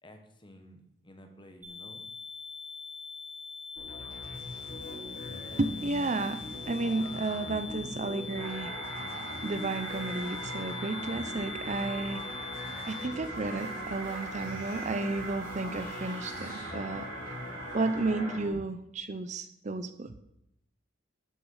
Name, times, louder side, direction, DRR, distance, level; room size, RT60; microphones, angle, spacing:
voice 1, 0.0-2.0, equal, 25° left, 5 dB, 1.4 m, -52 dB
sound 1, 1.6-13.1, left 6 dB, 10° right, 2.0 m, -43 dB
sound 2, 3.8-18.5, left 1 dB, 45° left, 5.5 m, -43 dB
voice 2, 5.6-8.8 9.4-12.6 12.8-17.1 17.7-20.2, right 3 dB, 35° right, 10 dB, 0.6 m, -32 dB
sound 3, 8.3-18.4, right 2 dB, 90° right, 5.3 m, -41 dB
13.0 x 7.3 x 5.6 m, 0.80 s
head